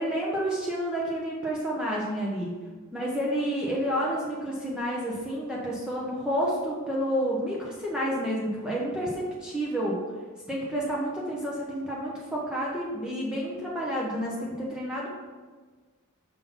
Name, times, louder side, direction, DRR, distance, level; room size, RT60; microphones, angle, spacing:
voice 1, 0.0-2.5 2.9-10.0 10.5-15.1, equal, 5° right, -5 dB, 0.7 m, -30 dB
5.7 x 3.8 x 5.5 m, 1.4 s
head